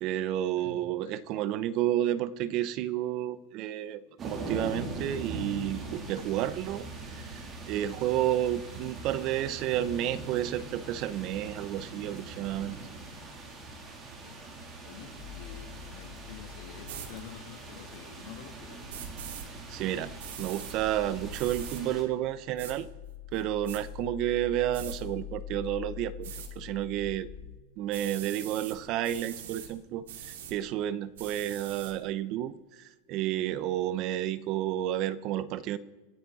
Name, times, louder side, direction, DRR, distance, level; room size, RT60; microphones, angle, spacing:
voice 1, 0.0-12.8 19.7-20.1 20.4-22.9 23.3-27.3 27.8-35.8, right 12 dB, 35° right, 17 dB, 0.6 m, -31 dB
voice 2, 0.6-1.1 14.2-14.4 14.8-18.8, left 8 dB, 65° left, 4 dB, 2.8 m, -48 dB
sound 1, 4.2-22.0, right 2 dB, 20° right, 2.9 m, -42 dB
sound 2, 15.2-27.6, left 10 dB, 40° left, 1.8 m, -46 dB
sound 3, 16.8-17.1 18.9-19.5 20.2-20.8 21.3-21.8 22.6-22.7 23.3-23.8 24.7-25.0 26.2-26.5 27.9-28.8 29.0-29.7 30.1-30.5 31.2-31.9, right 9 dB, 80° right, 2.6 m, -42 dB
27.0 x 9.3 x 4.0 m, 1.2 s
supercardioid pair, 160°, 0 cm